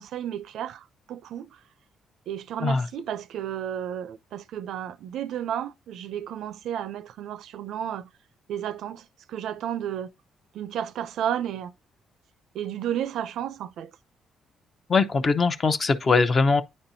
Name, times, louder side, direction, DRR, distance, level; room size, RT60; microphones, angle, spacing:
voice 1, 0.0-1.6 2.3-8.1 8.5-10.1 10.5-11.7 12.5-13.9, right 10 dB, 80° right, 0.4 m, -32 dB
voice 2, 14.9-16.6, left 4 dB, 40° left, 0.7 m, -21 dB
9.3 x 4.3 x 2.7 m
cardioid pair, 90°, 0 cm